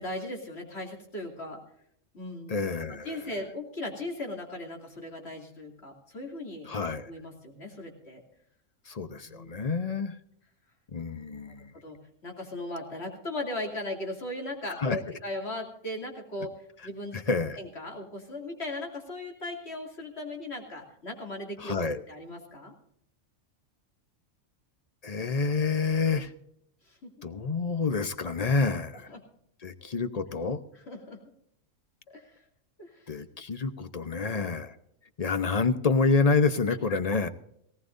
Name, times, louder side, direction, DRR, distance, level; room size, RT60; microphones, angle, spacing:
voice 1, 0.0-1.6 2.1-2.5 2.9-6.7 7.1-8.2 9.3-9.7 11.7-16.5 16.8-17.2 17.6-21.8 22.1-22.7 26.9-27.3 29.1-29.2 29.8-29.9 30.9-31.2 32.1-32.3 32.8-33.1 36.7-37.0, left 1 dB, 55° left, 2 dB, 3.0 m, -38 dB
voice 2, 2.5-3.2 6.7-7.1 8.9-10.1 10.9-11.7 14.8-15.0 17.1-17.6 21.6-22.0 25.0-26.3 27.2-29.1 29.6-30.6 33.1-34.8 35.2-37.3, left 4 dB, 35° left, 10 dB, 0.8 m, -28 dB
18.5 x 17.0 x 2.6 m, 0.71 s
omnidirectional pair, 1.3 m